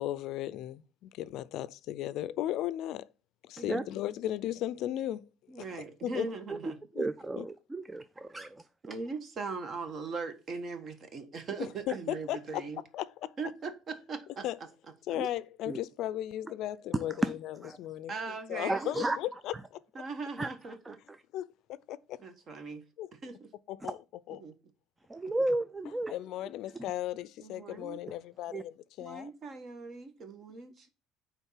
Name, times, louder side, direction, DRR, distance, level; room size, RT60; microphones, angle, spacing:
voice 1, 0.0-3.1 3.4-5.3 6.0-6.3 6.9-7.0 7.4-7.5 11.9-12.7 12.9-13.3 14.4-14.6 15.1-19.8 21.3-22.2 23.0-23.1 23.7-24.0 24.3-24.4 26.1-29.3, left 13 dB, 65° left, 0.4 m, -36 dB
voice 2, 3.6-3.9 5.5-6.8 8.8-12.8 13.4-14.4 18.1-19.1 19.9-21.0 22.2-22.8 23.1-23.5 24.4-24.5 27.4-28.0 29.0-30.9, right 4 dB, 40° right, 1.4 m, -40 dB
voice 3, 7.0-8.6 15.2-15.3 15.7-15.8 17.2-17.3 17.6-17.8 18.7-19.2 20.4-20.5 20.9-21.2 25.1-26.1 28.5-28.6, right 2 dB, 10° right, 0.4 m, -33 dB
9.1 x 3.6 x 5.7 m
cardioid pair, 135°, 0 cm